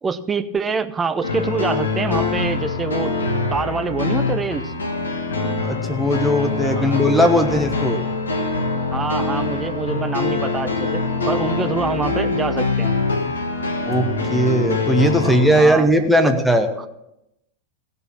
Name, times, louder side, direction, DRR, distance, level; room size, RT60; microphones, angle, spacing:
voice 1, 0.0-3.1 3.5-4.7 6.8-7.0 8.9-12.9 15.2-15.9 16.2-16.3, right 5 dB, 15° right, 11 dB, 0.7 m, -25 dB
sound 1, 1.2-15.6, left 3 dB, 70° left, 1.4 m, -24 dB
voice 2, 5.6-8.0 13.9-16.7, equal, ahead, 4 dB, 1.2 m, -18 dB
16.0 x 6.9 x 6.0 m, 0.85 s
figure-of-eight pair, 90°, 0 cm